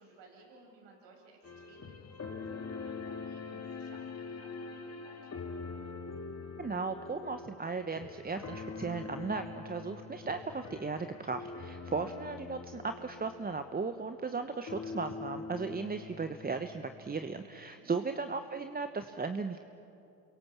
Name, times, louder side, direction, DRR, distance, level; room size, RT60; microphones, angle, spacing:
voice 1, 0.0-5.4 11.7-11.9 17.5-18.0, right 2 dB, 70° right, 1 dB, 7.0 m, -59 dB
sound 1, 1.4-14.4 14.7-17.5, left 4 dB, 35° left, 2.4 m, -44 dB
voice 2, 6.6-19.6, right 4 dB, 20° right, 8 dB, 1.1 m, -36 dB
29.0 x 23.5 x 7.4 m, 2.8 s
hypercardioid pair, 70°, 44 cm